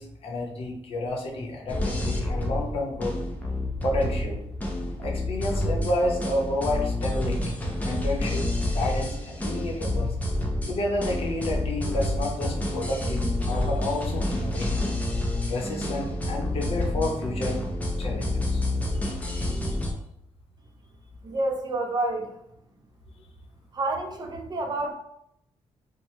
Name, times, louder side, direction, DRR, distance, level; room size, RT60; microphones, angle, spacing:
voice 1, 0.0-3.2 3.8-4.4 5.0-8.4 8.7-10.1 10.7-14.8 15.5-17.6 18.0-18.6 19.0-19.8, left 2 dB, 60° left, -1 dB, 0.7 m, -30 dB
sound 1, 1.7-19.9, left 1 dB, 15° left, 0.5 m, -28 dB
voice 2, 21.2-22.3 23.7-25.0, right 2 dB, 35° right, 3 dB, 0.5 m, -29 dB
2.9 x 2.1 x 3.1 m, 0.77 s
wide cardioid pair, 155°, 11 cm